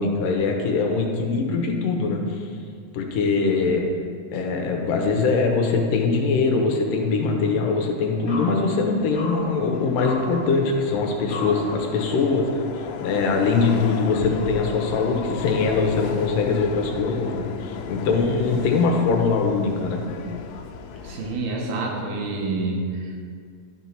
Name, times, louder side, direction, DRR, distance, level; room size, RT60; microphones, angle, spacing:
voice 1, 0.0-2.5 2.9-3.8 4.3-12.7 13.0-20.2, left 4 dB, 75° left, 2 dB, 2.4 m, -22 dB
sound 1, 6.9-12.1, left 2 dB, 45° left, 1.6 m, -36 dB
Subway metro underground, 9.0-21.4, left 6 dB, 90° left, 2.6 m, -35 dB
voice 2, 21.0-23.3, right 3 dB, 85° right, -1 dB, 3.1 m, -28 dB
11.5 x 4.5 x 5.8 m, 2.1 s
omnidirectional pair, 4.3 m